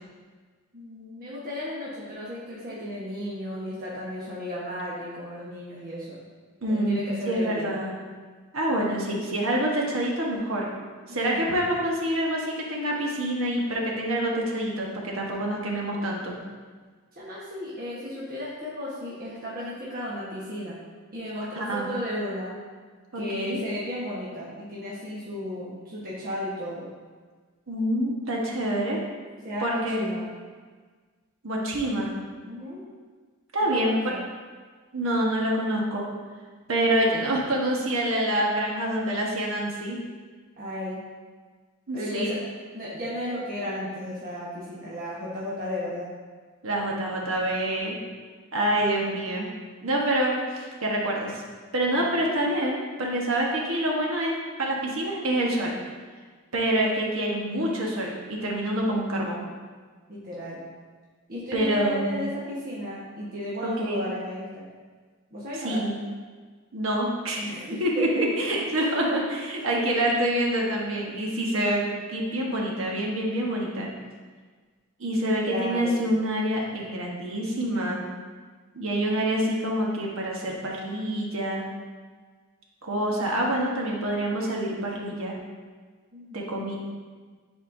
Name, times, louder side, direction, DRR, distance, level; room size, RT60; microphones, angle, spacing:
voice 1, 0.7-6.2 6.7-7.8 11.1-11.6 17.1-20.8 21.1-22.5 23.1-26.9 29.4-30.3 32.4-32.8 33.6-34.2 40.6-41.0 41.9-42.4 42.7-46.1 51.9-52.1 60.1-60.6 61.3-64.6 65.3-65.8 67.4-68.3 68.7-68.9 69.6-69.7 75.4-76.0 86.1-86.7, left 1 dB, 45° right, -7 dB, 1.2 m, -34 dB
voice 2, 6.6-7.0 7.3-8.0 8.5-10.7 11.1-16.3 21.5-21.9 23.1-23.6 27.7-29.0 29.6-30.1 31.4-32.1 33.5-33.9 34.9-36.1 36.7-40.0 41.9-42.4 46.6-48.0 48.5-49.5 49.8-51.4 51.7-55.7 56.5-59.5 61.5-62.1 63.6-64.1 65.6-66.0 66.7-67.5 67.8-73.9 75.0-78.0 78.7-81.6 82.8-85.3 86.3-86.8, right 1 dB, 80° right, -2 dB, 1.2 m, -26 dB
9.9 x 4.3 x 2.7 m, 1.5 s
head